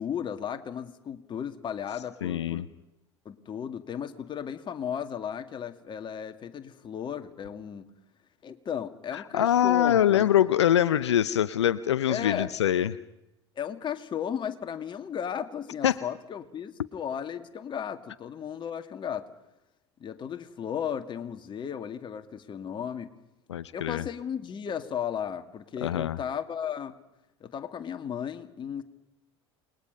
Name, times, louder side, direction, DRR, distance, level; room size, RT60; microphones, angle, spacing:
voice 1, 0.0-2.7 3.3-7.9 8.4-10.3 12.1-12.5 13.6-19.3 20.0-23.1 23.7-27.0 27.4-28.8, left 8 dB, 35° left, 7 dB, 2.2 m, -35 dB
voice 2, 2.2-2.7 9.1-13.0 15.8-16.0 23.5-24.0 25.8-26.2, left 11 dB, 80° left, 15 dB, 0.7 m, -24 dB
29.0 x 21.0 x 5.4 m, 0.93 s
hypercardioid pair, 75°, 14 cm